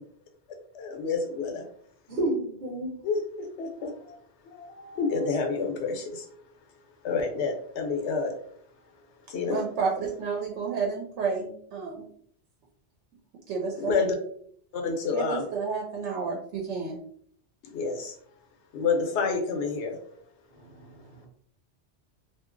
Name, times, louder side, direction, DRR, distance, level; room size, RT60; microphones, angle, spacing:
voice 1, 0.7-1.6 3.0-4.2 4.4-6.3 7.0-8.3 9.3-9.6 13.8-14.2 14.7-15.4 17.6-18.2 18.7-20.2, left 4 dB, 85° left, 3 dB, 0.9 m, -29 dB
voice 2, 2.1-2.9 20.5-21.3, right 2 dB, 50° right, -4 dB, 0.8 m, -31 dB
voice 3, 9.5-12.0 13.5-14.0 15.1-17.0, right 5 dB, 90° right, -1 dB, 0.9 m, -30 dB
2.7 x 2.4 x 2.4 m, 0.63 s
omnidirectional pair, 1.2 m